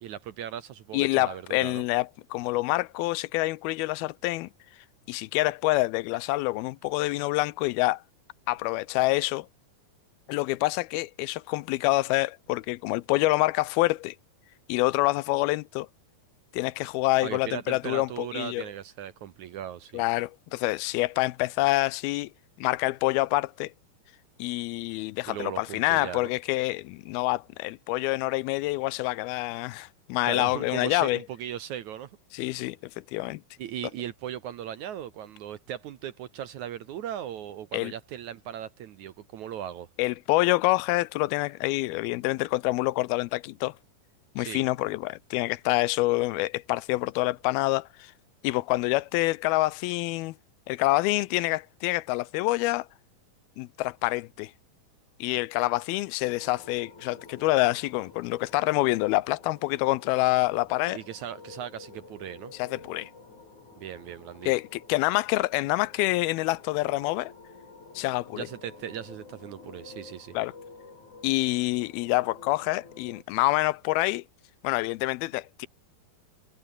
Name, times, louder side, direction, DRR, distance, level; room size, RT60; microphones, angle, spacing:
voice 1, 0.0-1.9 17.2-20.0 25.3-26.3 30.2-32.1 33.6-39.9 44.4-44.6 60.9-62.5 63.8-64.5 68.3-70.4, right 10 dB, 65° right, 2.0 m, -38 dB
voice 2, 0.9-4.5 5.1-8.0 8.5-9.5 10.3-14.2 14.7-15.9 16.5-18.6 19.9-22.3 22.6-23.7 24.4-31.2 32.3-32.8 33.1-33.4 37.7-37.9 40.0-43.7 44.4-48.1 48.4-50.3 50.7-52.9 53.6-54.5 55.2-61.0 62.6-63.1 64.5-67.3 68.0-68.5 70.3-70.5 71.2-74.2 74.6-75.7, left 20 dB, 85° left, 2.5 m, -27 dB
sound 1, 56.2-73.2, left 3 dB, 50° left, 8.3 m, -50 dB
omnidirectional pair, 4.4 m